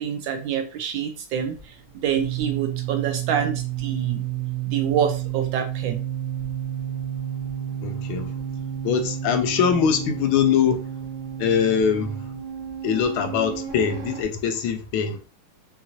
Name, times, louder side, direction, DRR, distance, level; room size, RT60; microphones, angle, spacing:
voice 1, 0.0-1.7 2.0-4.2 4.7-6.0, right 8 dB, 75° right, 1.2 m, -26 dB
sound 1, 1.4-14.2, right 10 dB, 45° right, 1.2 m, -31 dB
voice 2, 7.8-8.3 8.8-10.8 11.4-12.2 12.8-15.2, left 7 dB, 80° left, 1.4 m, -22 dB
5.5 x 2.5 x 2.9 m
omnidirectional pair, 2.3 m